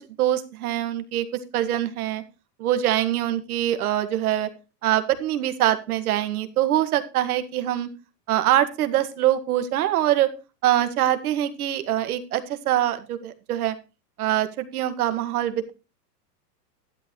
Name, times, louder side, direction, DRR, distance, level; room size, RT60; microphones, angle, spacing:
voice 1, 0.2-1.3 1.5-2.2 2.6-4.5 4.8-7.9 8.3-10.3 10.6-13.8 14.2-15.7, right 12 dB, 65° right, 10 dB, 1.9 m, -23 dB
12.5 x 11.5 x 3.2 m, 0.30 s
supercardioid pair, 165°, 48 cm